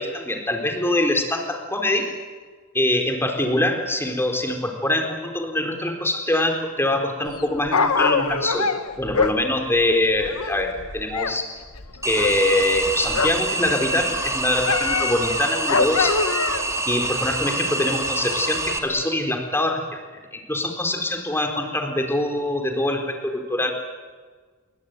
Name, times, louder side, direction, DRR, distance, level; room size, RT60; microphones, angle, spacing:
voice 1, 0.0-2.1 2.7-8.7 9.0-11.5 12.0-16.2 16.9-23.7, left 1 dB, 10° left, 3 dB, 4.2 m, -24 dB
Dog, 7.3-11.4 11.6-13.5 13.9-16.8 17.4-17.5, left 4 dB, 90° left, 1.7 m, -25 dB
sound 1, 12.0-18.8, right 2 dB, 15° right, 2.8 m, -26 dB
27.5 x 23.5 x 9.2 m, 1.5 s
head